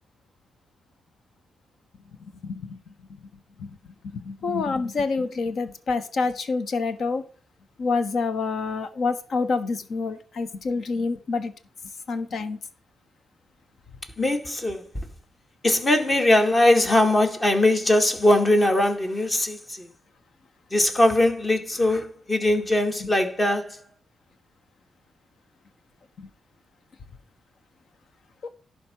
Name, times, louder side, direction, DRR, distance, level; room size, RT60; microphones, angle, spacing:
voice 1, 4.2-7.2 7.8-11.5 12.1-12.6 28.4-28.5, left 4 dB, 65° left, 1.2 m, -27 dB
voice 2, 14.2-14.8 15.6-19.6 20.7-23.7, left 1 dB, 35° left, 2.2 m, -20 dB
11.0 x 4.5 x 6.5 m
supercardioid pair, 45°, 0 cm